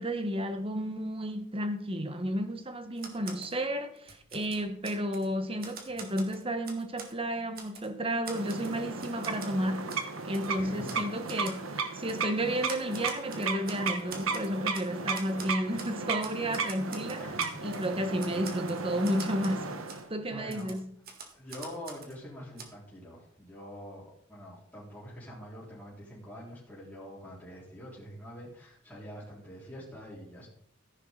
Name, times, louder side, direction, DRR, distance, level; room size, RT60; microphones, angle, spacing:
voice 1, 0.0-17.2 17.6-19.7 20.1-20.9, equal, 25° right, 1.3 m, -32 dB
Typewriter, 3.0-3.5 4.0-5.3 5.6-7.1 7.6-7.9 8.3-9.5 9.9-10.1 10.3-10.5 10.9-11.0 11.3-11.6 12.1-12.2 12.7-14.9 15.1-15.9 16.2-17.9 18.2-19.6 19.9-20.0 20.5-22.2 22.6-22.7, right 5 dB, 45° right, 1.8 m, -45 dB
sound 1, 8.3-20.1, right 4 dB, 85° right, 1.2 m, -35 dB
voice 2, 10.6-11.0 17.2-17.5 20.3-20.8 21.3-30.5, equal, 10° left, 4.0 m, -45 dB
14.0 x 10.5 x 3.9 m
head